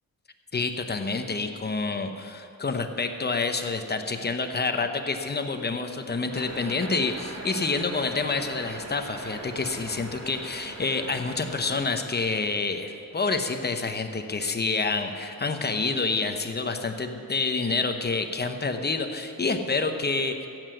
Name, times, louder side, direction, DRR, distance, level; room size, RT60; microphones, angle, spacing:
voice 1, 0.5-20.5, left 4 dB, 30° left, 6 dB, 0.8 m, -28 dB
sound 1, 6.3-11.9, right 2 dB, 50° right, 1.8 m, -40 dB
15.0 x 7.8 x 7.7 m, 2.6 s
wide cardioid pair, 150°, 34 cm